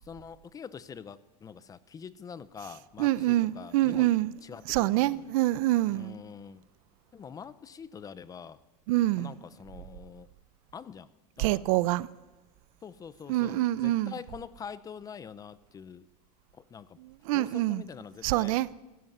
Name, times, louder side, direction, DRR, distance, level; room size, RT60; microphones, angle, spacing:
voice 1, 0.0-4.1 4.4-5.2 5.9-6.7 7.1-8.6 9.2-10.3 10.7-11.1 11.4-11.6 12.8-16.1 16.5-17.0 17.3-18.7, left 7 dB, 20° left, 0.6 m, -45 dB
voice 2, 3.0-4.3 4.7-6.2 8.9-9.3 11.4-12.1 13.3-14.1 17.0-17.8 18.2-18.7, right 16 dB, 60° right, 0.7 m, -26 dB
22.0 x 15.5 x 9.3 m
supercardioid pair, 150°, 20 cm